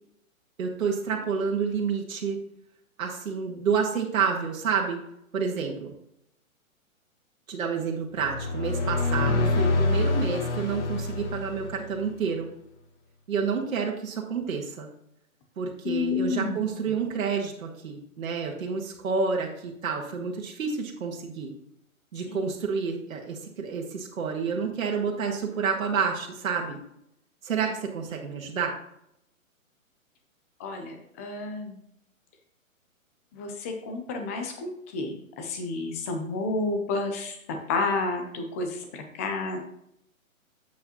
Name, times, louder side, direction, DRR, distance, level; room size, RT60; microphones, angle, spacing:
voice 1, 0.6-2.4 3.0-5.0 5.3-5.9 7.5-12.5 13.3-14.9 15.6-21.5 22.1-26.8 27.4-28.7, right 5 dB, 70° right, 0 dB, 1.7 m, -29 dB
sound 1, 8.2-12.1, left 3 dB, 55° left, 1.5 m, -26 dB
voice 2, 15.8-16.6 22.3-22.4 28.1-28.2 30.6-31.8 33.3-37.4 37.7-39.6, left 3 dB, 10° left, 4 dB, 0.5 m, -30 dB
8.2 x 6.8 x 3.0 m, 0.77 s
hypercardioid pair, 145°, 42 cm